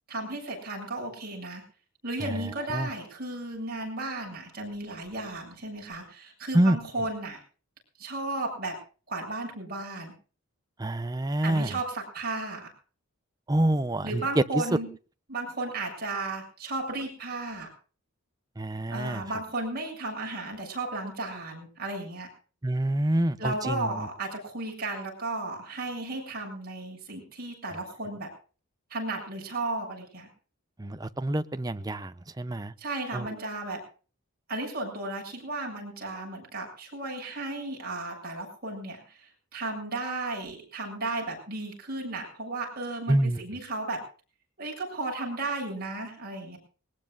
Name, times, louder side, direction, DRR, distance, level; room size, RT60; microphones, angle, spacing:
voice 1, 0.1-1.6 2.0-7.4 8.0-8.7 9.1-10.1 11.4-12.7 14.0-14.9 15.3-17.7 18.9-22.3 23.4-28.3 28.9-30.3 32.8-33.8 34.5-44.0 44.6-46.6, right 2 dB, 40° right, 0 dB, 7.1 m, -34 dB
voice 2, 10.8-11.7 13.5-14.6 18.6-19.2 22.6-23.9 30.8-32.7 33.1-33.3 43.1-43.4, right 1 dB, 15° right, 11 dB, 0.6 m, -26 dB
21.0 x 19.5 x 2.5 m, 0.37 s
head